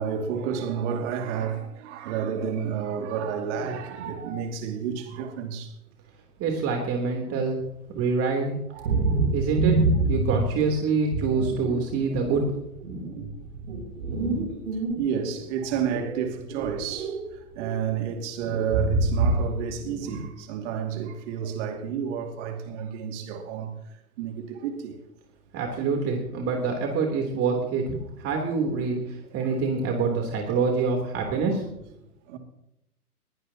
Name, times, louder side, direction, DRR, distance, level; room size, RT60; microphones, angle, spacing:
voice 1, 0.0-5.8 8.7-9.3 11.3-11.5 15.0-24.9 29.3-29.5 31.3-31.4 32.3-32.4, right 7 dB, 50° right, 2.6 m, -31 dB
voice 2, 6.4-7.6 7.9-8.6 9.3-12.5 25.5-31.6, right 4 dB, 30° right, 3.6 m, -26 dB
sound 1, 8.8-10.6 11.1-11.8 12.2-15.3 15.7-17.3 17.5-17.8 18.4-19.6 19.9-20.2, right 2 dB, 65° right, 6.1 m, -26 dB
21.5 x 19.0 x 3.0 m
hypercardioid pair, 110°, 46 cm